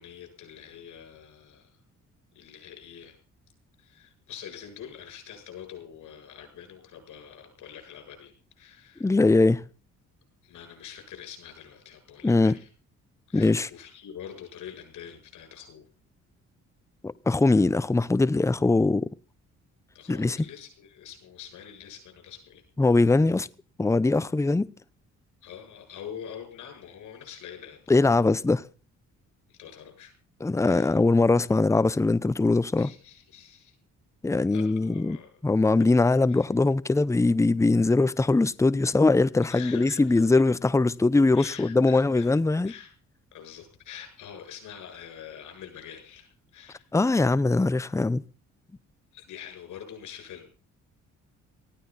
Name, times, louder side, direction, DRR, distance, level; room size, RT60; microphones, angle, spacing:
voice 1, 0.0-1.8 2.3-3.2 3.8-9.2 10.4-12.7 13.3-15.8 19.9-22.6 25.4-27.8 29.5-30.1 30.6-31.0 32.8-33.8 34.4-35.3 35.8-36.0 36.3-36.5 39.5-40.4 41.3-42.3 42.6-42.9 43.3-46.9 49.1-50.5, left 9 dB, 80° left, 7.5 m, -45 dB
voice 2, 9.0-9.6 12.2-12.6 13.3-13.7 17.0-19.1 20.1-20.4 22.8-23.5 23.8-24.7 27.9-28.6 30.4-32.9 34.2-35.2 35.4-42.7 46.9-48.2, left 3 dB, 10° left, 0.7 m, -21 dB
19.0 x 15.5 x 4.2 m
cardioid pair, 90°, 30 cm